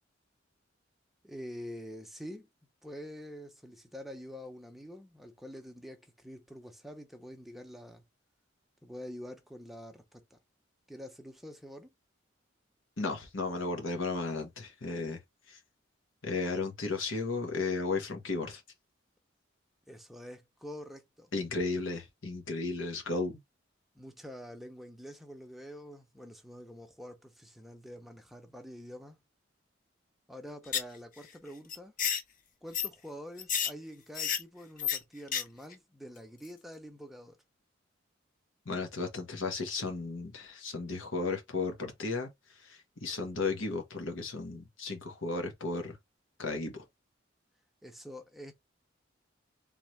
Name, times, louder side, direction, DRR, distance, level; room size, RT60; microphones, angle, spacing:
voice 1, 1.2-2.5 2.8-8.0 8.8-10.4 10.9-11.9 19.9-21.3 23.9-29.2 30.3-31.9 32.6-37.4 47.8-48.5, equal, ahead, 0.6 m, -46 dB
voice 2, 13.0-15.2 15.5-15.6 16.2-18.6 21.3-23.4 38.6-46.0 46.4-46.8, left 3 dB, 90° left, 1.3 m, -34 dB
sound 1, 30.7-31.0 31.2-31.3 31.7-32.2 32.7-32.9 33.4-33.7 34.1-34.4 34.8-35.0 35.3-35.4 35.7-35.8, left 8 dB, 45° left, 0.6 m, -30 dB
3.6 x 3.1 x 3.2 m
head